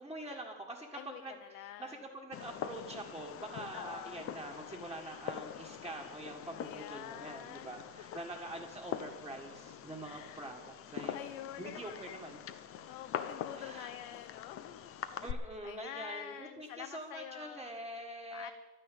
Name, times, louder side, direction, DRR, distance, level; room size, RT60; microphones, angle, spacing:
voice 1, 0.0-11.2 11.6-12.4 13.6-13.9 15.2-18.5, right 1 dB, 5° right, -5 dB, 1.8 m, -45 dB
voice 2, 0.9-2.0 3.7-4.2 6.5-7.8 8.1-8.2 10.0-10.5 11.1-12.0 12.9-14.9 15.2-15.3 15.6-17.7 18.3-18.5, left 12 dB, 70° left, 11 dB, 0.9 m, -47 dB
Fireworks, 2.3-15.3, left 9 dB, 30° left, 0.8 m, -44 dB
12.0 x 10.0 x 9.3 m, 1.3 s
supercardioid pair, 130°, 42 cm